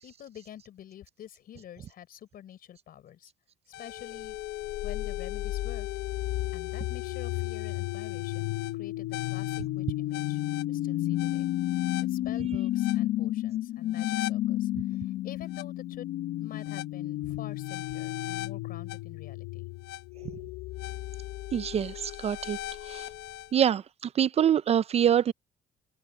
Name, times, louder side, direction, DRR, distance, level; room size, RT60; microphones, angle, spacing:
voice 1, 0.0-3.3 3.7-4.4 4.8-5.9 6.5-10.4 10.7-11.5 12.1-16.1 16.4-19.7, left 11 dB, 60° left, 5.8 m, -47 dB
sound 1, 3.7-23.5, left 15 dB, 80° left, 1.0 m, -32 dB
voice 2, 21.5-22.6 22.9-23.1 23.5-23.8 24.1-25.3, right 9 dB, 40° right, 0.4 m, -25 dB
cardioid pair, 110°, 17 cm